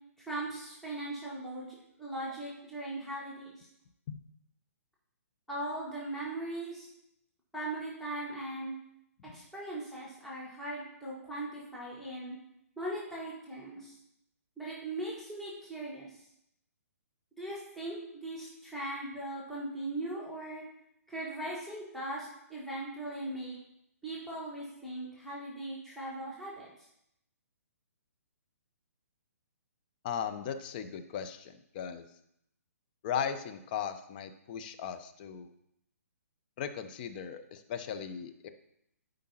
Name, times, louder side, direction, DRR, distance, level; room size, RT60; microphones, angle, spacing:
voice 1, 0.2-3.7 5.5-6.9 7.5-8.7 9.3-12.4 12.8-13.9 14.6-16.1 17.4-20.6 21.1-23.6 24.0-26.7, right 1 dB, 5° left, -6 dB, 1.8 m, -39 dB
voice 2, 30.0-32.0 33.0-35.5 36.6-38.5, left 8 dB, 35° left, 9 dB, 0.7 m, -37 dB
12.0 x 5.2 x 3.0 m, 0.77 s
figure-of-eight pair, 125°, 8 cm